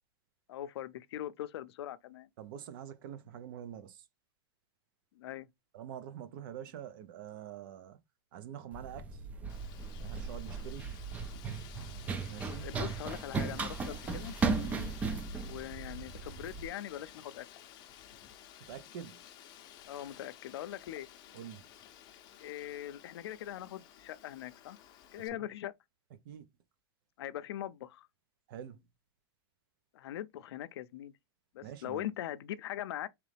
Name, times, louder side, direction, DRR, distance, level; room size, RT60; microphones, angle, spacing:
voice 1, 0.5-2.3 5.2-5.5 12.6-14.3 15.4-17.5 19.9-21.1 22.4-24.8 25.1-25.7 27.2-28.1 29.9-31.1 31.5-33.1, left 12 dB, 80° left, 0.5 m, -41 dB
voice 2, 2.4-4.1 5.7-8.0 8.3-9.2 10.0-10.9 12.3-12.7 14.7-15.0 18.7-19.2 21.3-21.7 25.4-25.5 26.2-26.5 28.5-28.8 31.6-32.0, right 10 dB, 55° right, 0.6 m, -45 dB
Run, 8.7-16.7, right 4 dB, 10° right, 0.3 m, -36 dB
Wind, 9.5-25.3, left 11 dB, 30° left, 0.6 m, -53 dB
3.7 x 3.1 x 3.3 m
supercardioid pair, 160°, 13 cm